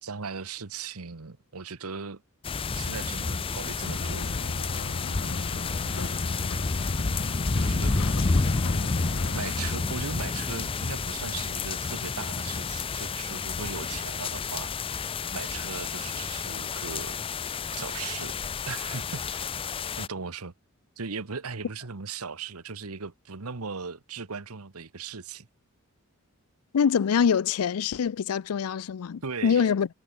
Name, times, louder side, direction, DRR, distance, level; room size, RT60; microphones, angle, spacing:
voice 1, 0.0-2.2 2.7-4.3 7.6-7.9 9.3-14.7 15.3-17.2 17.7-18.4 18.7-19.5 20.0-20.5 21.0-25.5 29.2-29.7, right 5 dB, 80° right, 1.2 m, -38 dB
sound 1, 2.4-20.1, left 4 dB, 25° left, 0.5 m, -30 dB
sound 2, 3.8-9.8, left 2 dB, 60° left, 1.3 m, -36 dB
voice 2, 26.7-29.9, left 7 dB, 85° left, 0.4 m, -24 dB
head